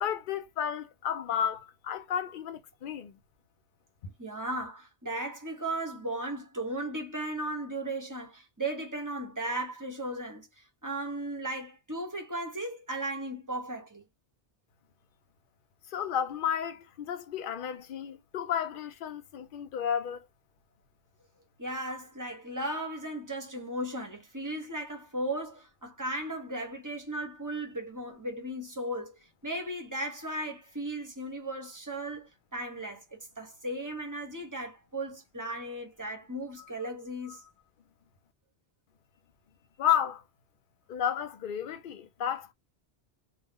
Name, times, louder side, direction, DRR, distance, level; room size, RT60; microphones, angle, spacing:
voice 1, 0.0-3.2 15.9-20.2 39.8-40.2 40.9-42.5, left 9 dB, 60° left, 0.6 m, -32 dB
voice 2, 4.2-14.0 21.6-37.4, right 1 dB, 20° right, 0.6 m, -36 dB
2.4 x 2.1 x 3.4 m
omnidirectional pair, 1.1 m